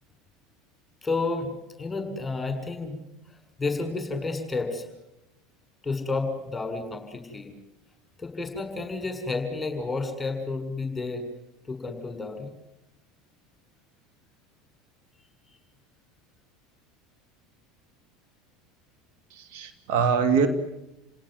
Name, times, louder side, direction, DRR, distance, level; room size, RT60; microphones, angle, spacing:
voice 1, 1.0-3.0 3.3-4.9 5.8-7.5 8.2-11.3 11.7-12.5, left 3 dB, 15° left, 6 dB, 7.1 m, -31 dB
voice 2, 19.3-20.5, right 6 dB, 60° right, 7 dB, 2.4 m, -23 dB
30.0 x 18.0 x 9.8 m, 0.94 s
figure-of-eight pair, 75°, 0 cm